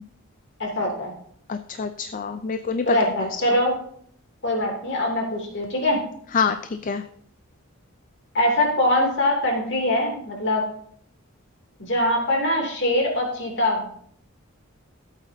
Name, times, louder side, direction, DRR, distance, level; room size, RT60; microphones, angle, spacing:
voice 1, 0.6-1.1 2.8-3.7 4.4-6.0 8.3-10.7 11.8-13.9, left 1 dB, 60° left, 0 dB, 2.8 m, -23 dB
voice 2, 1.5-2.9 3.2-3.3 6.3-6.6 6.8-7.0, left 5 dB, 40° left, 9 dB, 0.4 m, -26 dB
15.0 x 8.2 x 2.8 m, 0.62 s
head